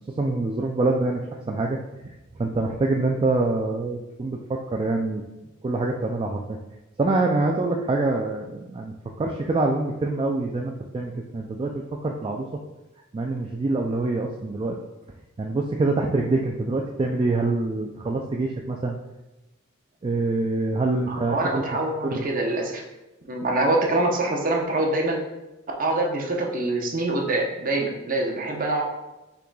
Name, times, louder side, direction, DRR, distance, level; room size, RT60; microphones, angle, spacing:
voice 1, 0.2-1.2 1.5-1.8 2.0-2.1 2.4-5.2 5.6-6.6 7.0-12.5 13.1-14.8 15.4-19.0 20.0-21.6 22.0-22.3, right 2 dB, 25° right, 0 dB, 0.3 m, -25 dB
voice 2, 21.1-22.8 23.3-25.2 25.8-28.8, right 2 dB, 45° right, 0 dB, 0.8 m, -25 dB
5.6 x 3.9 x 2.2 m, 1.0 s
head